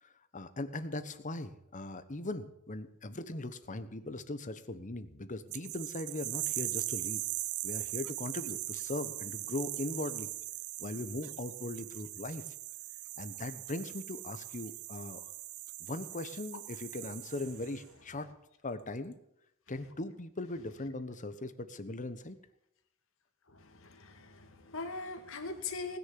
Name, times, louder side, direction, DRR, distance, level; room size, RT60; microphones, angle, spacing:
voice 1, 0.0-7.2 7.6-10.3 10.8-12.4 13.2-15.3 15.8-18.3 18.6-19.1 19.7-22.4, left 2 dB, 35° left, 11 dB, 1.2 m, -39 dB
sound 1, 5.5-17.8, right 18 dB, 85° right, 0.5 m, -40 dB
voice 2, 23.5-26.0, left 3 dB, 65° left, 5 dB, 2.2 m, -41 dB
19.5 x 6.9 x 9.4 m, 0.79 s
head